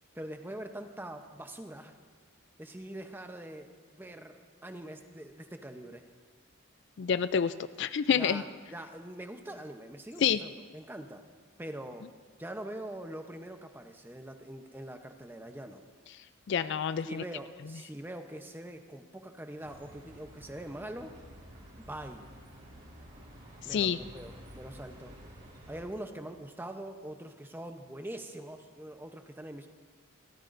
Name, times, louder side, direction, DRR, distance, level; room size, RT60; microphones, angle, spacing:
voice 1, 0.1-2.0 2.6-6.1 8.1-8.5 8.7-11.3 11.6-12.1 12.4-15.8 17.1-21.2 21.8-22.3 23.6-25.2 25.7-29.7, right 1 dB, 10° right, 6 dB, 0.8 m, -43 dB
voice 2, 7.0-8.4 10.2-10.4 16.5-17.2 23.7-24.0, left 7 dB, 55° left, 13 dB, 0.3 m, -28 dB
Bus, 19.6-25.9, equal, 45° right, 5.0 m, -51 dB
29.5 x 14.0 x 2.6 m, 1.5 s
head